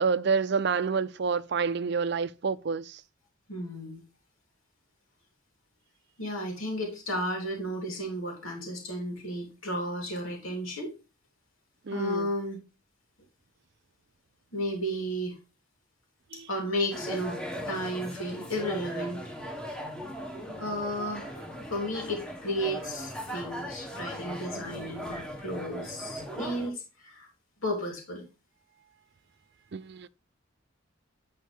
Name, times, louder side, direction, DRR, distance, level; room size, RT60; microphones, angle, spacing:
voice 1, 0.0-3.0 11.9-12.3 16.3-16.5 29.7-30.1, right 5 dB, 55° right, 0.5 m, -28 dB
voice 2, 3.5-4.0 6.2-10.9 11.9-12.6 14.5-15.4 16.5-19.3 20.6-27.3 27.6-28.2, equal, 85° left, 3.3 m, -33 dB
sound 1, 16.9-26.7, equal, 5° left, 1.4 m, -38 dB
10.5 x 4.7 x 3.4 m
head